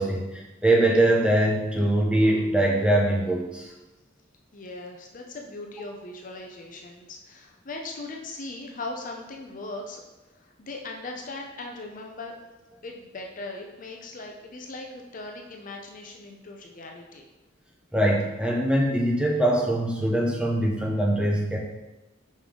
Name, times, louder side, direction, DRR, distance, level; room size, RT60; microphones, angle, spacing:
voice 1, 0.0-3.7 17.9-21.6, right 1 dB, 5° right, -2 dB, 0.8 m, -22 dB
voice 2, 4.5-10.0 10.3-12.3 12.8-17.3, left 2 dB, 45° left, 1 dB, 0.6 m, -39 dB
5.2 x 5.2 x 3.8 m, 1.0 s
head